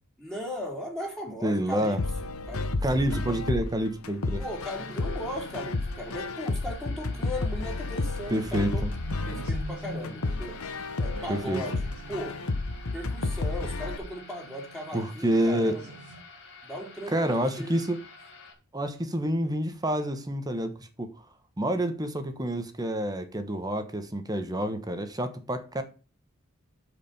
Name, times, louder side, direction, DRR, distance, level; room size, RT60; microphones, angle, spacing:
voice 1, 0.2-2.0 2.5-2.8 4.4-8.9 9.3-10.6 11.0-12.4 12.9-15.9 16.6-17.7, equal, ahead, 3.1 m, -37 dB
voice 2, 1.4-2.0 2.8-4.4 8.3-8.7 11.3-11.6 14.9-15.8 17.1-18.0 18.7-20.7 21.0-21.1 21.6-25.8, right 1 dB, 15° right, 1.2 m, -28 dB
sound 1, 2.0-14.0, left 2 dB, 85° left, 1.1 m, -32 dB
sound 2, 4.4-18.5, left 4 dB, 55° left, 3.2 m, -50 dB
sound 3, 7.4-16.2, right 1 dB, 85° right, 2.1 m, -46 dB
8.7 x 5.1 x 7.0 m
head